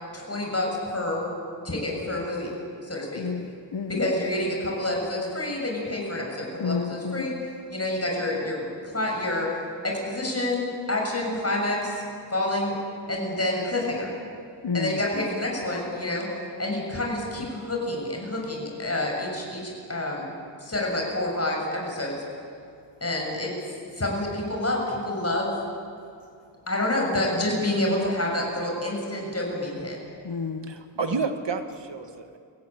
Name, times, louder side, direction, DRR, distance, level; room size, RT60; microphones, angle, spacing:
voice 1, 0.1-1.3 1.6-2.6 2.8-3.3 3.9-12.0 12.3-12.8 13.1-14.1 14.7-16.3 16.6-20.3 20.6-22.2 23.0-25.6 26.7-30.0, left 1 dB, 35° left, -1 dB, 6.9 m, -28 dB
voice 2, 3.2-3.9 6.6-7.3 14.6-14.9 30.2-30.7, left 5 dB, 65° left, 8 dB, 1.1 m, -30 dB
voice 3, 30.7-32.4, right 4 dB, 70° right, 7 dB, 1.8 m, -30 dB
24.5 x 16.5 x 9.0 m, 2.4 s
wide cardioid pair, 60°, 44 cm